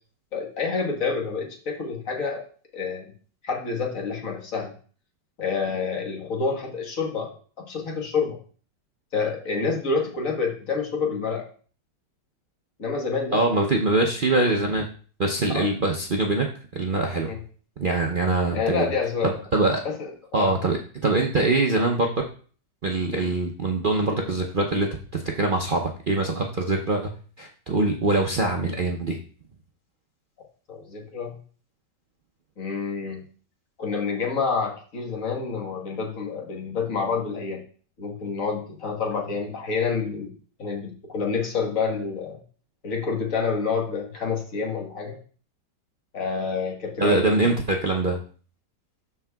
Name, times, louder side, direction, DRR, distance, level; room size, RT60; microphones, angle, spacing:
voice 1, 0.3-2.4 2.7-3.1 3.4-4.7 5.4-8.4 9.1-11.5 12.8-13.7 15.5-15.7 17.3-17.4 18.5-19.4 19.8-20.6 30.7-31.4 32.6-33.2 33.8-37.6 38.0-40.3 40.6-42.4 42.8-45.2 46.1-47.5, left 5 dB, 50° left, 0 dB, 1.8 m, -28 dB
voice 2, 13.3-14.9 15.2-16.5 16.7-17.3 17.8-18.9 19.2-19.8 20.3-22.1 22.8-27.1 27.4-29.2 47.0-48.2, right 2 dB, 75° right, 1 dB, 0.4 m, -23 dB
13.0 x 4.6 x 2.3 m, 0.42 s
omnidirectional pair, 1.9 m